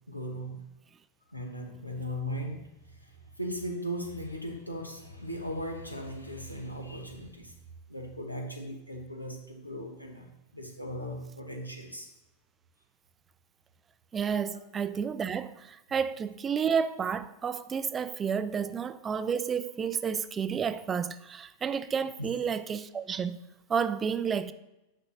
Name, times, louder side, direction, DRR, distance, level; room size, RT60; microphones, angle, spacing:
voice 1, 0.1-0.6 1.3-7.5 7.9-12.1 14.5-14.6 22.2-22.3, equal, 85° left, 1.1 m, -38 dB
voice 2, 14.1-23.4 23.7-24.5, right 7 dB, 20° right, 0.3 m, -31 dB
9.2 x 6.0 x 2.8 m
figure-of-eight pair, 90°, 0 cm